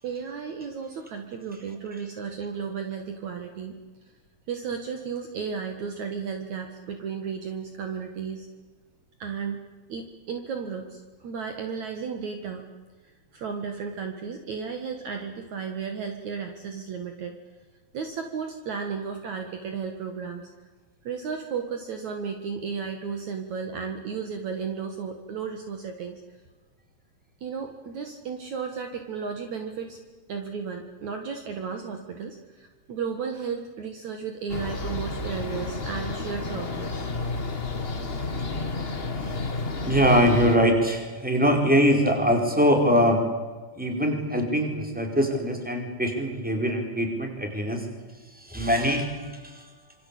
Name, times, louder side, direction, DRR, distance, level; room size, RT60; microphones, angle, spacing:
voice 1, 0.0-3.8 4.5-8.5 9.2-9.6 9.9-12.6 13.3-17.4 17.9-20.5 21.0-26.2 27.4-30.0 30.3-37.1, right 6 dB, 60° right, 5 dB, 2.8 m, -34 dB
sound 1, 34.5-40.6, left 3 dB, 40° left, 0.8 m, -31 dB
voice 2, 39.8-43.2 43.7-47.9 48.3-49.7, equal, ahead, 3 dB, 4.5 m, -23 dB
26.5 x 25.0 x 8.6 m, 1.3 s
omnidirectional pair, 4.1 m